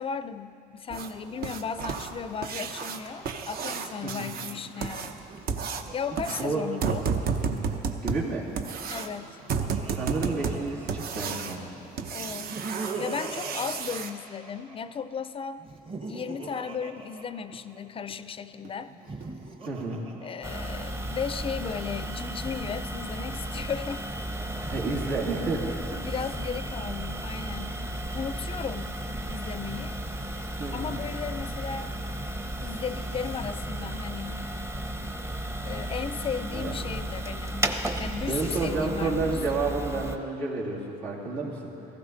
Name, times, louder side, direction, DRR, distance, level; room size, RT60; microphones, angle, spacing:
voice 1, 0.0-5.2 5.9-7.0 8.9-9.4 12.1-15.6 16.1-18.9 20.2-24.1 26.0-27.8 28.1-30.0 30.7-31.9 32.6-34.5 35.6-37.7 38.0-39.4, left 6 dB, 35° left, 13 dB, 0.4 m, -35 dB
sound 1, 0.9-14.1 16.4-16.5 17.0-17.1 17.5-17.6 18.1-18.2 18.7-18.8 19.2-19.3 19.8-19.9, right 5 dB, 60° right, 0.9 m, -32 dB
Laughter, 5.1-7.9 9.0-11.6 12.2-15.0 15.6-18.0 18.9-21.0, right 3 dB, 30° right, 1.1 m, -42 dB
voice 2, 8.0-8.5 9.9-11.6 19.6-20.1 24.7-25.8 30.6-31.0 36.5-36.8 38.3-41.7, right 3 dB, 85° right, -5 dB, 2.9 m, -30 dB
sound 2, 20.4-40.2, right 1 dB, 15° right, 0.8 m, -34 dB
17.0 x 14.5 x 4.0 m, 2.8 s
cardioid pair, 110°, 17 cm